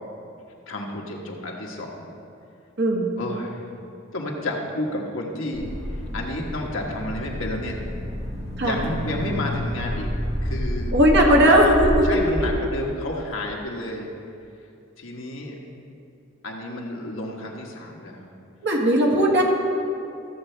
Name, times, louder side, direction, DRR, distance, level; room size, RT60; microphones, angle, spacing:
voice 1, 0.7-2.1 3.2-3.7 4.1-7.8 8.6-10.1 10.4-10.9 11.3-11.4 12.0-14.1 15.0-15.5 16.4-18.2, left 1 dB, 70° left, 0 dB, 1.3 m, -31 dB
voice 2, 2.8-3.2 8.6-8.8 10.9-12.3 18.6-19.4, equal, 60° right, -1 dB, 1.6 m, -18 dB
sound 1, 5.5-12.5, equal, 30° right, 1.2 m, -29 dB
14.0 x 7.3 x 3.3 m, 2.6 s
head